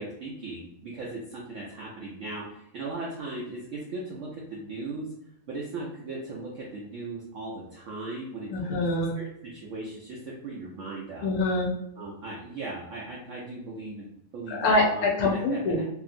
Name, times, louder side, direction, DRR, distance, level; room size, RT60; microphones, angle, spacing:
voice 1, 0.0-5.1 5.5-8.8 9.2-11.3 12.0-15.8, right 2 dB, 75° right, -4 dB, 0.7 m, -38 dB
voice 2, 8.5-9.2 11.2-11.7 14.5-15.8, left 2 dB, 70° left, -1 dB, 0.9 m, -25 dB
2.8 x 2.6 x 2.4 m, 0.78 s
omnidirectional pair, 1.9 m